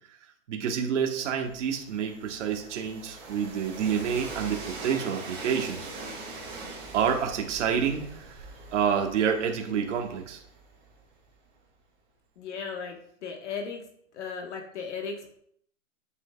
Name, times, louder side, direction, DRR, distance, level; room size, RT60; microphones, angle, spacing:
voice 1, 0.5-5.9 6.9-8.4 8.7-10.4, right 7 dB, 65° right, 3 dB, 1.4 m, -28 dB
Train, 1.4-11.2, right 3 dB, 15° right, 1.8 m, -42 dB
voice 2, 12.4-13.8 14.1-15.4, left 5 dB, 60° left, 2 dB, 1.4 m, -36 dB
8.0 x 6.1 x 2.3 m, 0.65 s
hypercardioid pair, 150°, 39 cm